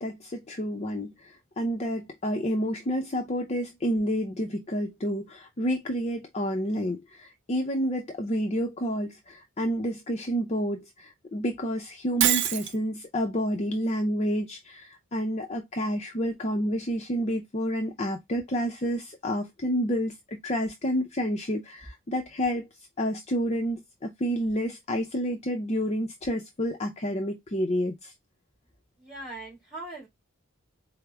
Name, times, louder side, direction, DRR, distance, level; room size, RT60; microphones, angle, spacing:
voice 1, 0.0-22.7 23.0-28.1, equal, 30° left, 0.5 m, -29 dB
Shatter, 12.2-12.8, right 11 dB, 55° right, 0.4 m, -24 dB
voice 2, 29.0-30.1, right 2 dB, ahead, 2.5 m, -40 dB
4.6 x 2.0 x 3.3 m
head